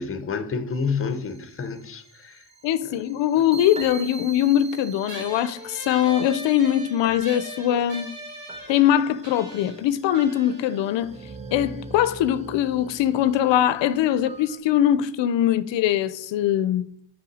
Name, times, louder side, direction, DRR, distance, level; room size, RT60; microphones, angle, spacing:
voice 1, 0.0-2.4, left 5 dB, 30° left, 0.7 m, -29 dB
sound 1, 0.7-14.6, right 4 dB, 15° right, 0.5 m, -43 dB
voice 2, 2.6-8.1 8.7-11.1 11.5-16.9, left 11 dB, 85° left, 0.5 m, -22 dB
sound 2, 5.1-11.9, right 1 dB, 80° right, 2.5 m, -40 dB
5.6 x 5.5 x 4.1 m
cardioid pair, 125°, 43 cm